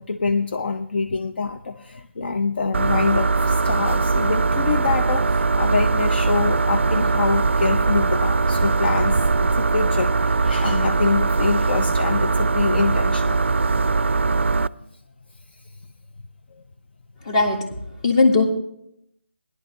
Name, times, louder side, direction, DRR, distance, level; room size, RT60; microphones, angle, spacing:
voice 1, 0.0-13.4 16.5-16.6, left 4 dB, 55° left, 8 dB, 0.6 m, -25 dB
sound 1, 2.7-14.7, right 4 dB, 80° right, 0.3 m, -20 dB
voice 2, 17.3-17.8 18.0-18.4, left 3 dB, 30° left, 2 dB, 1.9 m, -18 dB
17.5 x 11.0 x 3.3 m, 0.76 s
figure-of-eight pair, 155°, 6 cm